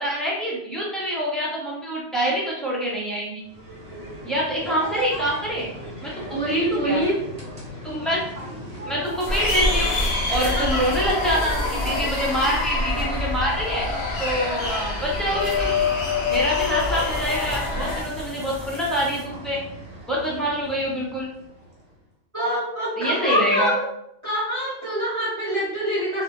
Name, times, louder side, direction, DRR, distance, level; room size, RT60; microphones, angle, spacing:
voice 1, 0.0-3.4 4.2-5.7 6.0-7.0 7.8-8.2 8.8-9.9 10.3-13.9 14.2-15.8 16.3-19.6 20.1-21.3 23.0-23.7, equal, ahead, -6 dB, 0.5 m, -26 dB
sound 1, 3.4-21.9, equal, 85° right, 1.0 m, -37 dB
voice 2, 6.3-7.2 10.3-10.8 22.3-23.8 24.2-26.2, equal, 30° right, -11 dB, 1.0 m, -25 dB
sound 2, 9.0-13.5 13.8-13.9 14.8-19.2, equal, 50° right, 0.7 m, -37 dB
sound 3, 9.3-18.0, left 3 dB, 80° left, 0.8 m, -25 dB
2.2 x 2.0 x 2.8 m, 0.77 s
omnidirectional pair, 1.1 m